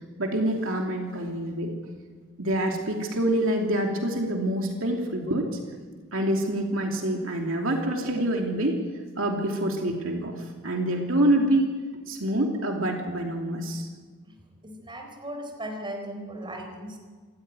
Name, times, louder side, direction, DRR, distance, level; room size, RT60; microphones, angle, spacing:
voice 1, 0.2-1.7 2.4-5.6 6.1-8.8 9.2-11.7 12.1-13.9, right 1 dB, 65° right, 1 dB, 3.0 m, -26 dB
voice 2, 14.6-17.0, right 1 dB, 20° right, 3 dB, 4.3 m, -37 dB
27.5 x 14.0 x 9.9 m, 1.5 s
head